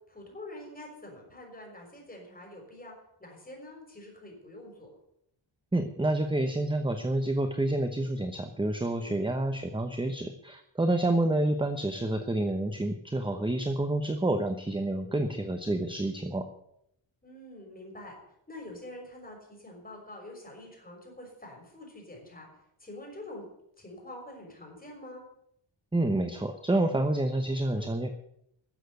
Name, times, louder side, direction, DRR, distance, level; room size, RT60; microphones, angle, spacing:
voice 1, 0.1-2.9 3.2-4.9 9.0-9.2 11.4-11.5 15.0-15.2 17.2-18.1 18.5-22.5 22.8-23.5 23.8-25.3 27.7-27.9, left 1 dB, 20° left, 0 dB, 6.0 m, -46 dB
voice 2, 5.7-16.5 25.9-28.1, right 1 dB, 10° right, 7 dB, 0.9 m, -28 dB
13.5 x 7.6 x 9.3 m, 0.75 s
wide cardioid pair, 135°, 46 cm